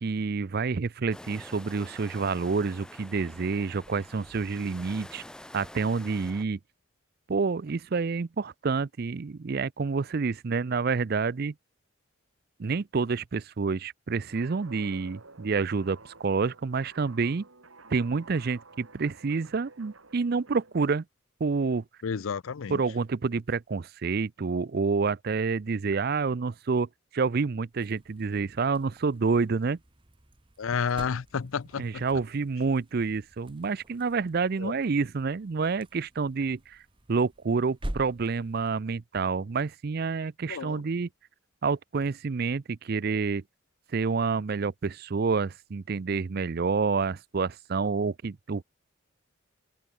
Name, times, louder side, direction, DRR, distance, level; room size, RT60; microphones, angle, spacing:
voice 1, 0.0-5.2 5.5-6.6 7.3-11.5 12.6-17.4 17.9-21.0 21.4-21.8 22.7-29.8 31.8-36.8 37.1-41.1 41.6-43.4 43.9-48.6, right 4 dB, 50° right, 0.5 m, -28 dB
sound 1, 1.1-6.4, left 1 dB, 5° left, 0.6 m, -47 dB
Guitar, 14.3-20.8, right 3 dB, 80° right, 3.3 m, -52 dB
voice 2, 22.0-22.8 30.6-32.0 34.6-34.7 40.5-40.8, left 6 dB, 80° left, 0.5 m, -31 dB
sound 2, 27.7-38.8, right 1 dB, 25° right, 1.2 m, -46 dB
head